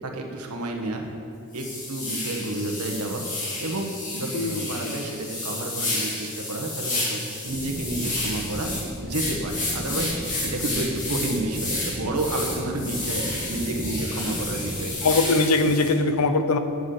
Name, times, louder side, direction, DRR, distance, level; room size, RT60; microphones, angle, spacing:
voice 1, 0.0-1.1 1.5-3.3 3.6-8.7 9.0-10.2 10.4-14.9, right 2 dB, 85° right, 2 dB, 1.4 m, -30 dB
sound 1, 1.0-1.1 1.5-15.9, left 2 dB, 35° left, 2.9 m, -31 dB
voice 2, 4.3-4.7 15.0-16.6, left 3 dB, 85° left, 8 dB, 0.8 m, -21 dB
sound 2, 7.4-14.9, equal, 40° right, 2.1 m, -35 dB
9.4 x 7.9 x 6.6 m, 2.5 s
head